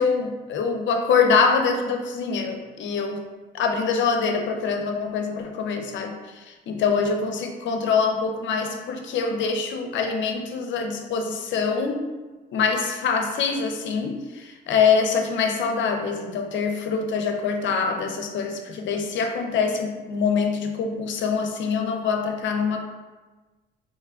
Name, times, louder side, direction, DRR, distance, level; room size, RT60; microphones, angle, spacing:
voice 1, 0.0-3.2 3.5-12.1 12.5-22.8, left 5 dB, 70° left, 4 dB, 0.6 m, -24 dB
4.2 x 3.3 x 2.3 m, 1.2 s
cardioid pair, 90°, 20 cm